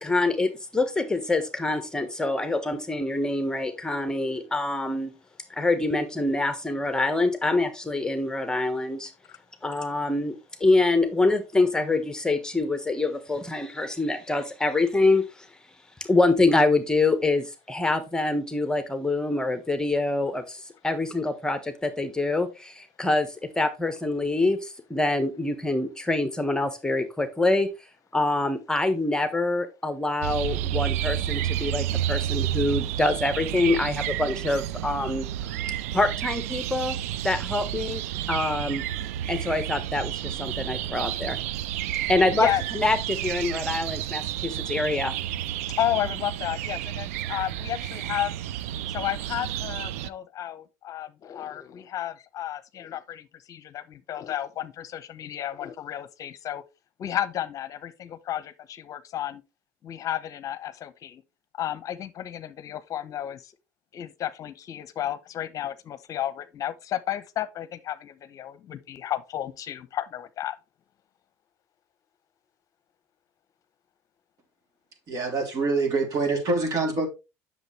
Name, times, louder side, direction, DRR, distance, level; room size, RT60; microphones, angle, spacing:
voice 1, 0.0-5.1 5.5-9.1 9.6-15.5 16.0-27.7 28.1-35.2 35.9-36.9 37.2-38.0 38.3-38.8 39.3-41.4 42.1-45.1, left 2 dB, 10° left, 1.3 m, -25 dB
sound 1, 30.2-50.1, right 12 dB, 85° right, 0.4 m, -31 dB
voice 2, 42.1-42.6 45.8-48.4 48.9-56.6 57.0-59.4 59.8-61.2 61.5-63.5 63.9-70.6, left 12 dB, 50° left, 0.8 m, -32 dB
voice 3, 75.1-77.1, right 3 dB, 50° right, 3.4 m, -25 dB
8.0 x 6.6 x 3.3 m
supercardioid pair, 80°, 8 cm